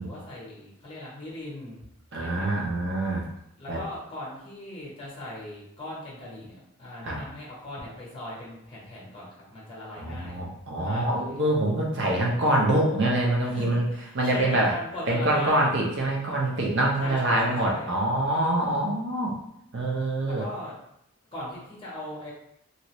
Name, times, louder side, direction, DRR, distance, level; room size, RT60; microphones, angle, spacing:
voice 1, 0.0-1.8 2.1-2.6 3.6-10.4 10.8-11.5 13.4-15.7 17.0-18.0 20.2-20.7 21.3-22.3, left 1 dB, 25° left, -5 dB, 0.9 m, -39 dB
voice 2, 2.1-3.3 3.7-3.8 7.0-7.2 10.0-13.8 14.1-14.7 15.1-19.3 19.7-20.4, right 1 dB, 50° right, -2 dB, 0.7 m, -25 dB
2.8 x 2.5 x 3.0 m, 0.78 s
head